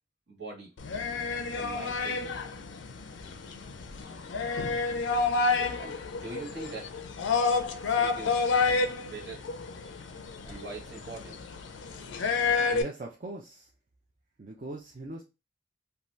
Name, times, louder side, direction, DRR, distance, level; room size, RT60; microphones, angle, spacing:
voice 1, 0.3-0.7 1.5-2.3 5.8-7.0 7.8-8.5 9.0-9.4 10.4-11.4, right 3 dB, 60° right, 1.3 m, -42 dB
sound 1, 0.8-12.8, left 4 dB, 75° left, 0.4 m, -29 dB
voice 2, 12.7-13.7 14.4-15.2, right 2 dB, 40° right, 0.5 m, -40 dB
2.6 x 2.3 x 3.1 m
head